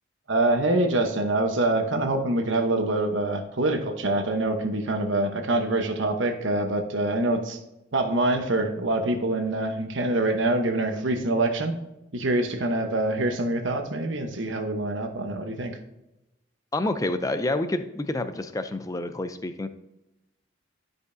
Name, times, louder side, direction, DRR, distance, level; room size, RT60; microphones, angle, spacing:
voice 1, 0.3-7.6 7.9-11.7 12.1-15.8, right 2 dB, 75° right, 5 dB, 1.0 m, -25 dB
voice 2, 16.7-19.7, left 2 dB, 15° left, 10 dB, 0.4 m, -28 dB
12.0 x 5.2 x 2.7 m, 0.96 s
head